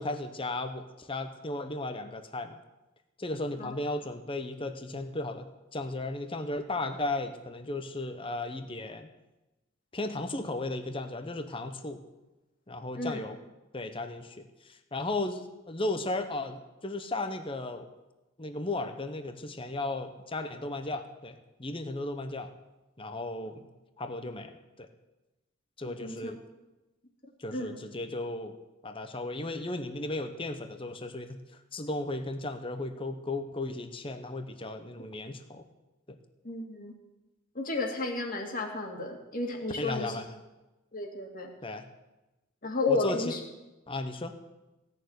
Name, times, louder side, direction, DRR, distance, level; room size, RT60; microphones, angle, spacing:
voice 1, 0.0-2.6 3.2-9.1 9.9-12.0 12.7-13.4 13.7-17.9 18.4-22.5 23.0-23.7 24.0-24.9 25.8-26.4 27.4-28.6 28.8-35.6 39.8-40.3 41.6-41.8 42.9-43.4 43.9-44.4, left 2 dB, 25° left, 7 dB, 0.9 m, -35 dB
voice 2, 26.0-26.3 27.5-27.8 35.0-35.1 36.4-36.9 37.5-40.2 40.9-41.5 42.6-43.4, left 3 dB, 40° left, 2 dB, 2.2 m, -32 dB
17.0 x 6.8 x 9.5 m, 1.1 s
head